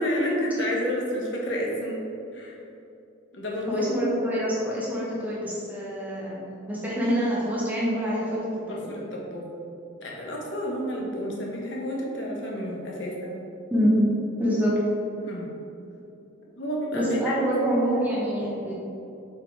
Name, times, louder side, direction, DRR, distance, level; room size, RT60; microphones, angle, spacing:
voice 1, 0.0-2.0 2.3-2.5 3.3-3.9 8.7-9.5 10.0-13.4 15.2-15.5 16.6-17.4, equal, 65° left, -3 dB, 1.2 m, -30 dB
voice 2, 3.7-9.0 13.7-14.0 14.4-14.7 16.9-18.7, equal, 10° right, -7 dB, 1.3 m, -26 dB
8.2 x 4.8 x 3.4 m, 2.8 s
head